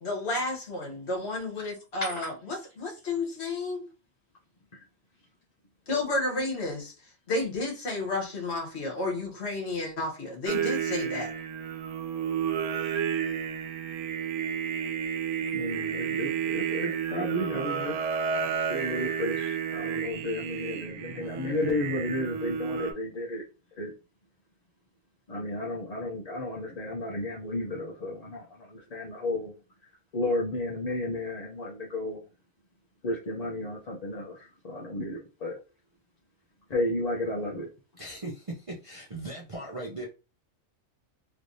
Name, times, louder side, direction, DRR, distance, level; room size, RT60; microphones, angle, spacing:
voice 1, 0.0-3.9 5.9-6.9 7.3-11.3, left 2 dB, 55° left, 1.4 m, -31 dB
Singing, 10.5-22.9, right 7 dB, 90° right, 1.0 m, -31 dB
voice 2, 15.5-18.0 18.7-23.4 23.8-23.9 25.3-29.5 30.1-32.2 33.0-35.6 36.7-37.7, left 1 dB, 40° left, 0.6 m, -32 dB
voice 3, 38.0-40.1, right 2 dB, 35° right, 0.5 m, -38 dB
3.2 x 3.1 x 2.6 m
omnidirectional pair, 1.3 m